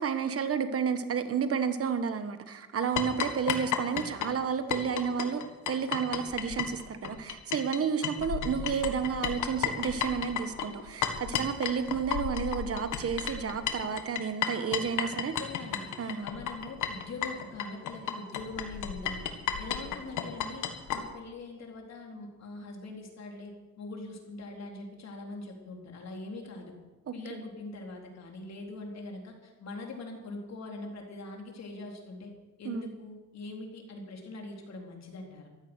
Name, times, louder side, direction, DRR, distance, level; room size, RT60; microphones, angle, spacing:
voice 1, 0.0-15.3 16.0-16.3 27.1-27.4 32.6-32.9, right 6 dB, 50° right, 10 dB, 1.4 m, -31 dB
sound 1, 3.0-7.8 8.0-21.0, left 9 dB, 85° left, 1.7 m, -33 dB
voice 2, 15.1-19.3 19.6-20.7 20.9-26.7 27.1-32.3 32.6-35.5, left 2 dB, 60° left, 1 dB, 4.0 m, -42 dB
14.5 x 13.0 x 6.3 m, 1.2 s
cardioid pair, 90°, 30 cm